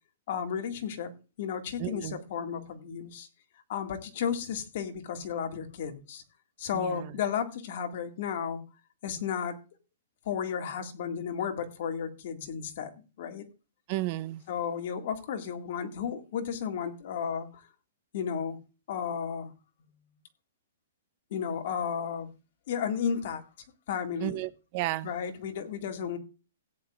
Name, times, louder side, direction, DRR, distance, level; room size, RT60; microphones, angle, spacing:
voice 1, 0.3-1.1 1.4-3.3 3.7-6.2 6.6-8.6 9.0-9.6 10.3-13.5 14.5-17.5 18.1-18.6 18.9-19.5 21.3-22.3 22.7-23.4 23.9-24.4 25.0-26.2, left 7 dB, 45° left, 2.0 m, -33 dB
voice 2, 1.8-2.2 6.7-7.1 13.9-14.4 24.2-25.1, right 17 dB, 30° right, 0.6 m, -33 dB
16.5 x 9.7 x 2.5 m
hypercardioid pair, 170°, 0 cm